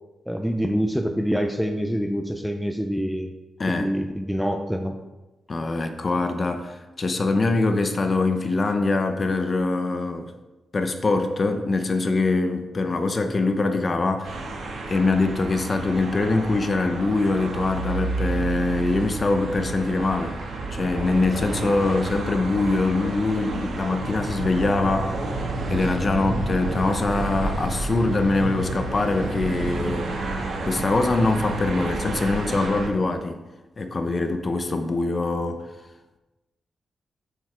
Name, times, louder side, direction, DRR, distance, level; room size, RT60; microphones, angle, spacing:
voice 1, 0.3-3.3 3.7-5.0, equal, ahead, 4 dB, 0.5 m, -26 dB
voice 2, 5.5-10.3 10.7-14.4 14.9-20.3 20.7-25.2 25.7-30.1 30.6-33.4 33.8-35.6, left 3 dB, 30° left, 7 dB, 0.8 m, -23 dB
sound 1, 14.2-32.9, right 2 dB, 85° right, 1.7 m, -30 dB
7.9 x 7.1 x 4.4 m, 1.1 s
wide cardioid pair, 150°, 0 cm